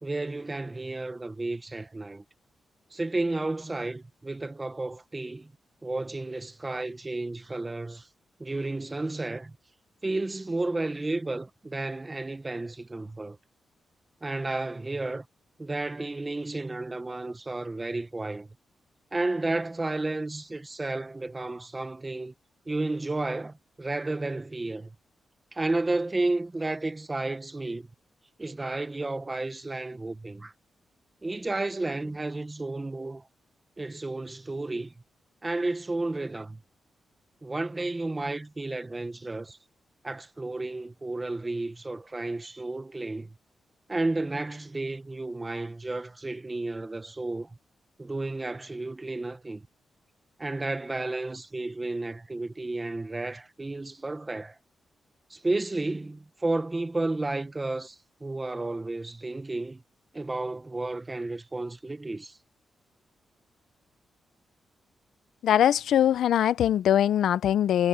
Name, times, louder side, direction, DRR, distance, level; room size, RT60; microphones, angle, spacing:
voice 1, 0.0-2.2 2.9-5.5 5.8-8.1 8.4-9.5 10.0-13.4 14.2-15.3 15.6-18.5 19.1-22.3 22.7-24.9 25.5-27.9 28.4-30.5 31.2-33.2 33.8-34.9 35.4-36.6 37.4-39.6 40.0-43.4 43.9-47.6 48.0-49.7 50.4-54.6 55.3-59.8 60.1-62.4, right 2 dB, 20° right, 1.2 m, -32 dB
voice 2, 65.4-67.9, left 10 dB, 90° left, 0.6 m, -22 dB
cardioid pair, 115°, 0 cm